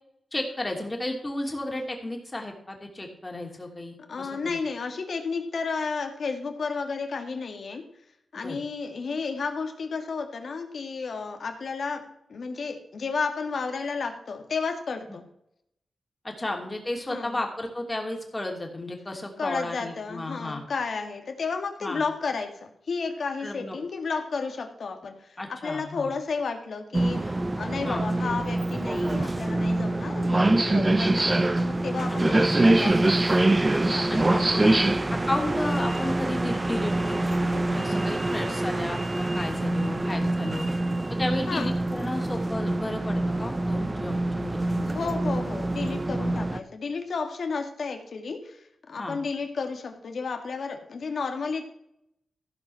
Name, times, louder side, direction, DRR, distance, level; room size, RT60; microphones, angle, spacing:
voice 1, 0.3-4.6 8.4-8.6 16.2-20.6 21.8-22.0 23.4-23.7 25.4-26.1 27.8-28.0 30.8-30.9 32.3-32.6 34.1-34.6 35.1-40.7 41.2-45.0 46.2-46.3 49.0-49.2, left 1 dB, 25° left, 2 dB, 2.8 m, -33 dB
voice 2, 4.1-7.9 8.3-15.2 17.1-17.4 19.4-22.5 22.9-25.2 25.5-35.2 41.5-41.7 44.9-48.6 48.9-51.7, left 4 dB, 65° left, 5 dB, 1.9 m, -32 dB
sound 1, 26.9-46.6, right 2 dB, 25° right, 0.6 m, -25 dB
15.5 x 5.3 x 5.7 m, 0.75 s
cardioid pair, 85°, 0 cm